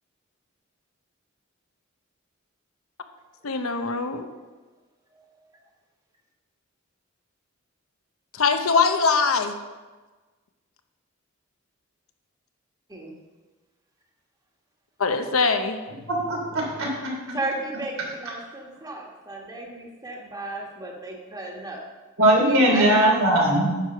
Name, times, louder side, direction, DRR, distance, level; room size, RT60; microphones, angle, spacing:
voice 1, 3.4-4.3 8.3-9.5 15.0-15.8, left 4 dB, 85° left, 7 dB, 0.8 m, -22 dB
voice 2, 16.1-17.1 22.2-23.7, right 1 dB, 85° right, -2 dB, 3.1 m, -20 dB
voice 3, 17.3-21.9 22.3-23.0, right 2 dB, 20° right, -1 dB, 1.4 m, -34 dB
9.4 x 6.1 x 5.6 m, 1.3 s
head